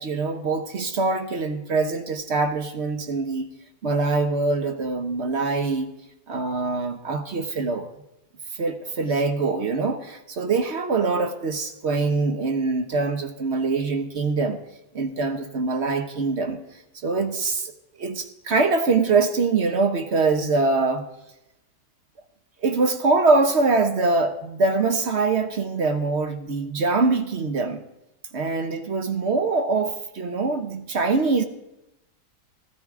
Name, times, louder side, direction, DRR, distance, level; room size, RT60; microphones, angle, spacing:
voice 1, 0.0-3.5 3.8-5.9 6.3-7.9 8.6-14.6 14.9-16.6 17.0-17.7 18.0-21.1 22.6-27.8 28.3-31.4, right 3 dB, 50° right, 7 dB, 0.9 m, -23 dB
14.0 x 13.5 x 3.6 m, 0.90 s
omnidirectional pair, 1.8 m